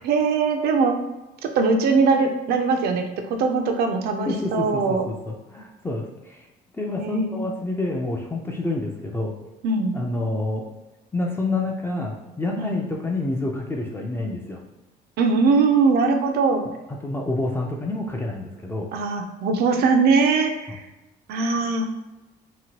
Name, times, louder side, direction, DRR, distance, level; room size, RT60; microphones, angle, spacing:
voice 1, 0.0-1.0 1.4-3.0 3.3-5.1 7.0-7.4 9.6-10.0 12.6-12.8 15.2-16.6 18.9-20.8 21.3-21.9, right 4 dB, 70° right, 4 dB, 0.5 m, -21 dB
voice 2, 4.3-6.5 6.7-9.3 9.9-10.7 11.1-14.6 17.0-18.9, left 2 dB, 15° left, 0 dB, 0.4 m, -28 dB
2.9 x 2.2 x 2.8 m, 1.0 s
cardioid pair, 110°, 17 cm